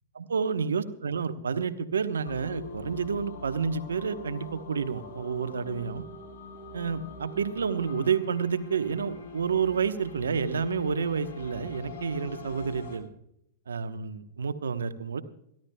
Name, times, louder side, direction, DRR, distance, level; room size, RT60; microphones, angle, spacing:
voice 1, 0.1-6.1 6.7-13.1 13.7-15.2, right 6 dB, 80° right, 10 dB, 1.0 m, -29 dB
sound 1, 2.2-13.0, left 2 dB, 65° left, 4.3 m, -43 dB
27.5 x 12.0 x 2.3 m, 0.76 s
hypercardioid pair, 105°, 0 cm